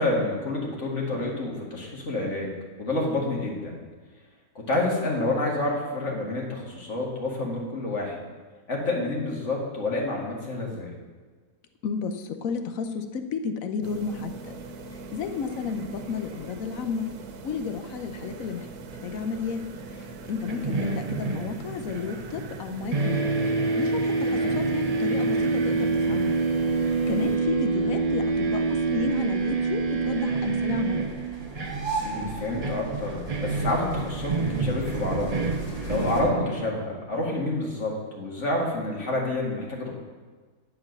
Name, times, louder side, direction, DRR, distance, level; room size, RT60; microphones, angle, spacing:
voice 1, 0.0-2.5 2.8-3.7 4.6-8.2 8.7-10.9 20.5-20.8 24.2-24.6 27.2-27.4 32.0-35.4 35.9-39.9, left 2 dB, 50° left, -2 dB, 2.0 m, -28 dB
voice 2, 11.8-14.3 15.1-17.1 17.4-18.7 19.0-19.6 19.9-23.3 23.8-26.4 27.1-29.8 30.1-31.2, left 5 dB, 65° left, 7 dB, 1.1 m, -32 dB
sound 1, 13.8-27.4, right 3 dB, 80° right, 1.3 m, -41 dB
sound 2, 20.5-22.7 22.9-36.9, right 3 dB, 35° right, 0.6 m, -27 dB
sound 3, 25.9-36.2, right 3 dB, 30° left, 1.9 m, -39 dB
9.8 x 4.8 x 6.3 m, 1.5 s
omnidirectional pair, 1.6 m